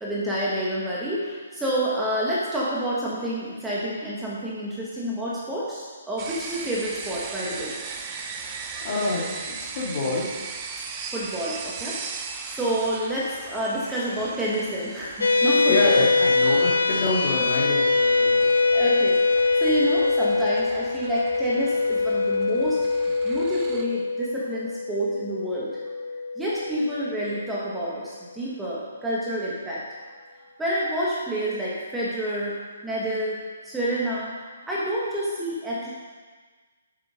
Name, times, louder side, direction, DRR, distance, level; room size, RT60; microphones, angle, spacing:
voice 1, 0.0-7.7 11.1-16.1 18.7-19.2 19.6-22.9 23.2-25.7 26.4-29.8 30.6-33.4 33.6-35.9, right 1 dB, 5° right, -7 dB, 1.6 m, -28 dB
sound 1, 6.2-23.8, right 5 dB, 25° right, 0.7 m, -39 dB
voice 2, 8.8-10.3 15.7-18.5, left 2 dB, 40° left, -4 dB, 2.9 m, -27 dB
sound 2, 15.2-27.8, left 3 dB, 85° left, 1.1 m, -23 dB
7.9 x 7.6 x 5.3 m, 1.4 s
hypercardioid pair, 150°, 0 cm